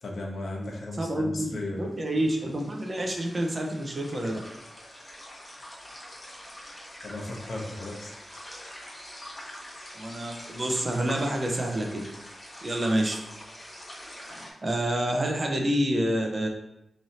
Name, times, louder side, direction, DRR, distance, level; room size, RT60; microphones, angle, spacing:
voice 1, 0.0-1.9 7.0-8.1, left 2 dB, 70° left, -1 dB, 0.8 m, -35 dB
voice 2, 1.0-1.5 1.8-4.3 10.0-12.1 12.6-13.1 14.3-16.5, right 1 dB, 35° right, 2 dB, 0.6 m, -28 dB
sound 1, 1.8-14.5, left 1 dB, 20° left, 1.0 m, -45 dB
3.1 x 2.7 x 4.0 m, 0.85 s
wide cardioid pair, 100°, 0 cm